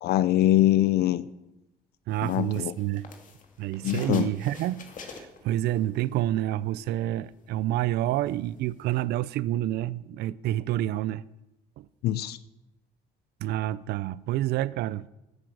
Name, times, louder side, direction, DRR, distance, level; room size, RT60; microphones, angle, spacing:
voice 1, 0.0-1.2 2.2-2.7 3.8-4.3 12.0-12.4, left 13 dB, 70° left, 0.6 m, -23 dB
sound 1, 2.1-6.3 6.7-9.0, left 5 dB, 50° left, 2.4 m, -47 dB
voice 2, 2.1-3.1 3.6-11.2 11.8-11.9 13.4-15.1, right 14 dB, 75° right, 0.5 m, -28 dB
11.5 x 9.9 x 7.9 m
cardioid pair, 110°, 17 cm